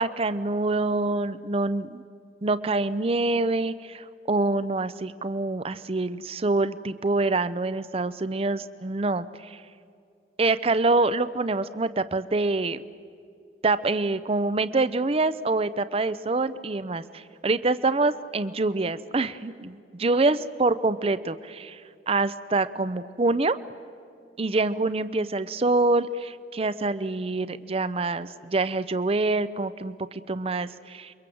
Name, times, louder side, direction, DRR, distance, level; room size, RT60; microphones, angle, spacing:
voice 1, 0.0-2.0 2.4-9.6 10.4-12.8 13.6-21.8 22.1-23.6 24.4-31.1, right 3 dB, 35° right, 14 dB, 0.6 m, -26 dB
29.0 x 23.0 x 7.8 m, 2.4 s
head